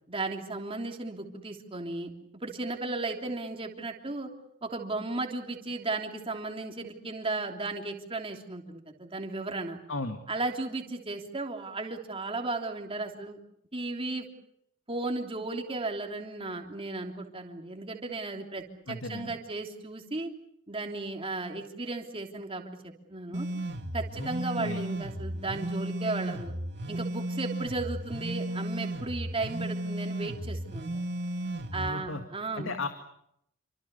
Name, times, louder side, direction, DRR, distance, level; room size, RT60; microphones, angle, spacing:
voice 1, 0.1-2.1 2.4-4.3 4.6-9.8 10.3-13.4 13.7-14.3 14.9-20.3 20.7-23.5 23.9-26.5 26.9-31.0 31.7-32.8, right 2 dB, 30° right, 2 dB, 3.3 m, -35 dB
voice 2, 9.9-10.2 18.9-19.4 24.2-24.3 24.6-24.8 31.7-32.2 32.5-32.9, left 2 dB, 75° left, 6 dB, 2.2 m, -35 dB
sound 1, 23.3-31.9, right 1 dB, 60° right, 2.3 m, -34 dB
28.5 x 25.5 x 7.0 m, 0.76 s
head